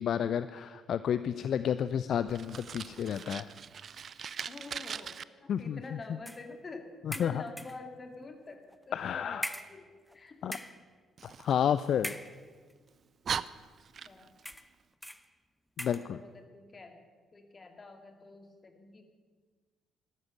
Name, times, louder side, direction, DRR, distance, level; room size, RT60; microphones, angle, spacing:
voice 1, 0.0-3.5 5.5-5.8 7.0-7.4 8.9-9.4 10.4-10.6 11.2-12.2 15.8-16.2, left 9 dB, 55° left, 14 dB, 0.4 m, -31 dB
Fire, 2.3-5.2 11.2-12.4 12.9-13.0 13.2-14.5, right 7 dB, 50° right, 0.5 m, -40 dB
voice 2, 4.5-9.9 10.1-10.6 14.0-14.3 15.8-17.0 17.3-19.0, left 3 dB, 35° left, 5 dB, 2.3 m, -47 dB
sound 1, 6.3-6.5 7.1-7.9 8.7-8.8 9.4-10.2 10.4-10.9 12.0-12.7 13.5-13.6 14.4-14.8 15.0-15.3 15.8-16.1, equal, ahead, 0.9 m, -41 dB
13.0 x 12.5 x 7.9 m, 1.5 s
figure-of-eight pair, 45°, 0 cm